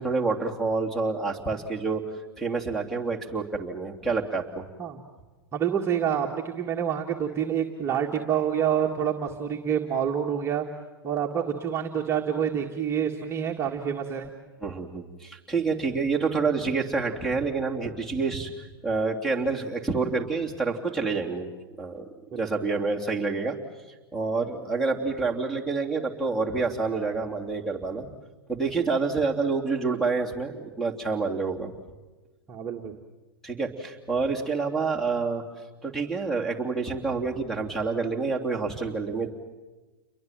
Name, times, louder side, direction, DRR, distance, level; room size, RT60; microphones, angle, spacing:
voice 1, 0.0-2.0 2.4-4.7 14.6-21.5 21.8-22.0 22.3-23.6 24.1-28.1 28.5-31.7 33.4-35.4 35.8-39.3, right 4 dB, 5° left, 5 dB, 3.1 m, -28 dB
voice 2, 5.5-10.7 11.0-14.3 22.3-22.4 32.5-32.9, right 8 dB, 20° right, -1 dB, 1.8 m, -27 dB
29.5 x 22.5 x 7.7 m, 1.2 s
hypercardioid pair, 120°, 13 cm